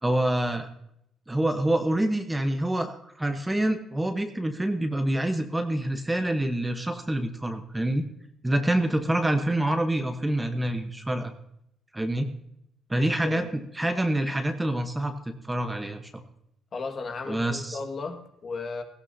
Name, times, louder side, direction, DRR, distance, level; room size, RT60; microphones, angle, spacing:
voice 1, 0.0-0.7 1.3-8.0 8.4-11.3 11.9-12.3 12.9-13.5 13.7-16.2 17.3-17.8, right 1 dB, 10° right, 6 dB, 1.1 m, -26 dB
voice 2, 12.9-13.5 16.7-18.8, left 4 dB, 40° left, 5 dB, 1.8 m, -35 dB
17.5 x 16.0 x 2.8 m, 0.75 s
cardioid pair, 130°, 0 cm